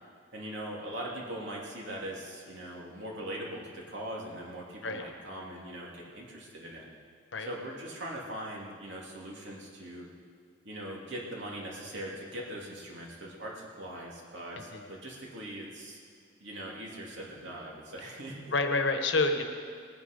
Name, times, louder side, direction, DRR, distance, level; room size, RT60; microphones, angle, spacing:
voice 1, 0.3-6.9 7.4-10.1 10.6-16.0 16.4-18.5, right 1 dB, 65° right, -3 dB, 2.7 m, -41 dB
voice 2, 18.5-19.4, left 3 dB, 65° left, 6 dB, 1.1 m, -28 dB
19.0 x 9.4 x 5.2 m, 2.1 s
head